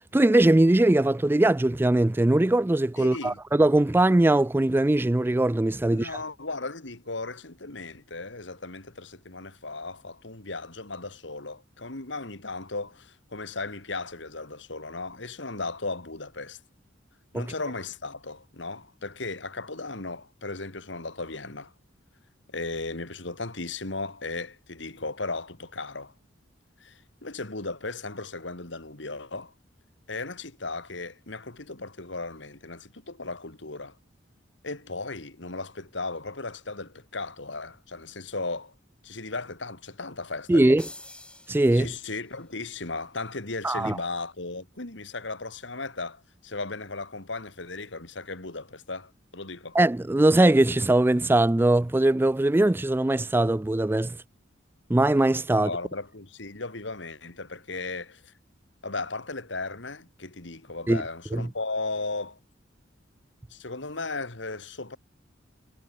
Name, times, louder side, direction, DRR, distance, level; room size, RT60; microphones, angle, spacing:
voice 1, 0.1-6.1 17.3-17.4 40.5-40.9 41.5-41.9 43.6-44.0 49.7-54.2 54.9-55.7 60.9-61.0 61.3-61.5, right 1 dB, 10° right, 0.3 m, -21 dB
voice 2, 3.0-3.4 5.9-16.6 17.3-21.7 22.5-26.1 26.8-29.5 30.1-34.0 34.6-38.7 39.0-40.8 41.7-49.8 55.5-58.3 58.8-62.4 63.5-65.0, left 3 dB, 65° left, 2.7 m, -36 dB
sound 1, 40.8-42.4, left 2 dB, 5° left, 3.1 m, -47 dB
head